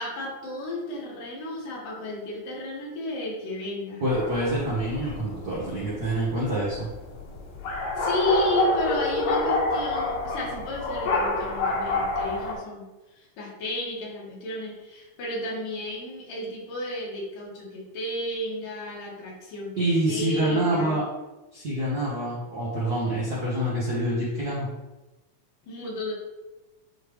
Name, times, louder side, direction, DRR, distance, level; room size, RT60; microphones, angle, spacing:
voice 1, 0.0-4.0 8.0-21.0 23.0-23.3 25.6-26.1, left 1 dB, 85° left, -4 dB, 3.4 m, -32 dB
voice 2, 4.0-6.9 19.8-21.0 21.5-24.7, right 1 dB, 80° right, -7 dB, 0.8 m, -26 dB
sound 1, 4.1-12.5, left 3 dB, 70° left, 2.5 m, -28 dB
9.9 x 3.3 x 3.1 m, 1.1 s
omnidirectional pair, 3.8 m